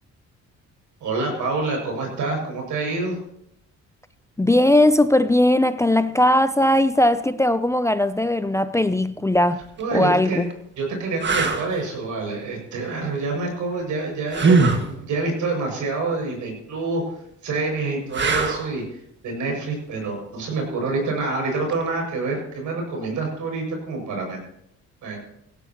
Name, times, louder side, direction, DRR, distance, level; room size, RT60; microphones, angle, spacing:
voice 1, 1.0-3.2 9.8-10.4 10.8-17.0 17.4-24.4 25.0-25.2, right 3 dB, 80° right, 6.6 m, -27 dB
voice 2, 4.4-9.6 9.9-10.5, left 1 dB, 10° left, 0.5 m, -19 dB
sound 1, 9.6-9.8 10.5-10.6 11.2-11.7 14.3-14.9 18.1-18.7 21.7-21.9, right 4 dB, 35° right, 1.9 m, -20 dB
17.0 x 16.5 x 3.0 m
cardioid pair, 90°, 30 cm